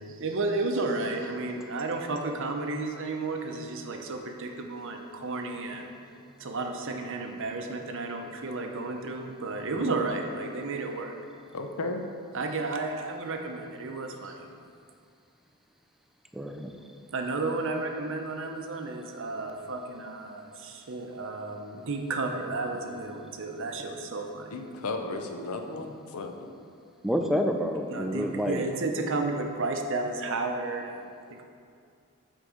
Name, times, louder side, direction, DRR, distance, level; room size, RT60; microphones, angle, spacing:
voice 1, 0.0-5.9 6.4-11.1 12.3-14.5 17.1-24.5 27.9-31.0, right 3 dB, 60° right, 3 dB, 0.7 m, -32 dB
voice 2, 11.5-12.0 24.5-26.3, left 3 dB, 80° left, 5 dB, 0.6 m, -34 dB
voice 3, 16.3-16.7 27.0-28.7, equal, ahead, 3 dB, 0.3 m, -29 dB
8.1 x 3.8 x 4.9 m, 2.3 s
head